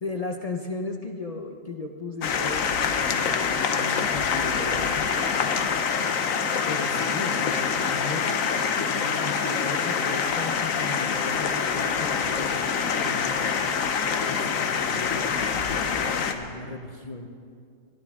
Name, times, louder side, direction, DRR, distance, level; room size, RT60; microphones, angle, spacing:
voice 1, 0.0-5.7 6.7-8.4 8.8-13.9 14.3-17.3, left 3 dB, 35° left, 3 dB, 0.7 m, -36 dB
sound 1, 2.2-16.3, left 6 dB, 85° left, 1.2 m, -25 dB
22.0 x 12.5 x 3.6 m, 2.3 s
omnidirectional pair, 1.4 m